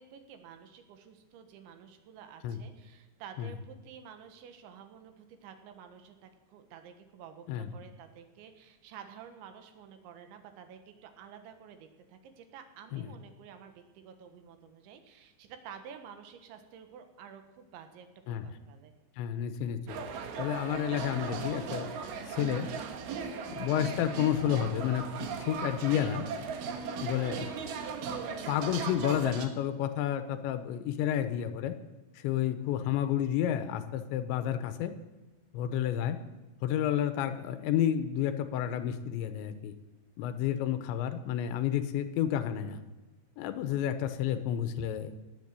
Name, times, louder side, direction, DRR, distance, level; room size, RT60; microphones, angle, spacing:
voice 1, 0.0-18.9 40.6-41.0, right 8 dB, 90° right, 7 dB, 3.7 m, -51 dB
voice 2, 19.2-20.0 20.4-21.9 22.3-22.7 23.5-25.0 25.4-26.2 27.0-27.5 28.5-31.8 32.2-34.9 35.5-36.2 36.6-39.7 40.2-42.8 43.4-45.1, left 10 dB, 85° left, 10 dB, 3.3 m, -30 dB
sound 1, 19.9-29.5, right 5 dB, 65° right, 3.0 m, -37 dB
18.5 x 8.2 x 8.2 m, 1.1 s
omnidirectional pair, 5.2 m